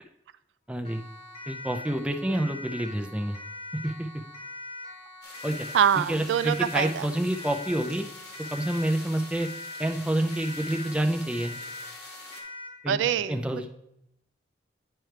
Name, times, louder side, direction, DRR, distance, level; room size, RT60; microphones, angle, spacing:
voice 1, 0.7-1.0 1.5-3.4 3.8-4.1 5.4-5.7 6.1-8.1 8.5-9.5 9.8-11.6 12.8-13.0 13.3-13.8, right 1 dB, 5° right, 4 dB, 0.4 m, -28 dB
Siren, 0.8-12.8, left 2 dB, 30° left, 1.2 m, -42 dB
sound 1, 5.2-12.4, left 3 dB, 70° left, 1.5 m, -45 dB
voice 2, 5.7-7.1 12.9-13.4, right 8 dB, 90° right, 15 dB, 0.3 m, -25 dB
9.1 x 4.5 x 3.3 m, 0.79 s
head